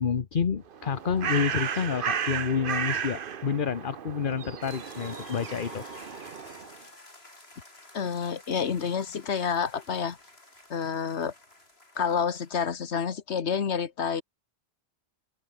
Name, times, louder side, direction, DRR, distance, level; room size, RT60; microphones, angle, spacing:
voice 1, 0.0-5.8, left 6 dB, 50° left, 1.2 m, -29 dB
Bird, 0.7-6.7, right 7 dB, 55° right, 1.0 m, -34 dB
sound 1, 4.6-12.7, left 2 dB, 70° left, 5.0 m, -50 dB
voice 2, 7.9-10.2 10.7-11.3 12.0-14.2, left 6 dB, 85° left, 1.6 m, -29 dB
open air
omnidirectional pair, 1.1 m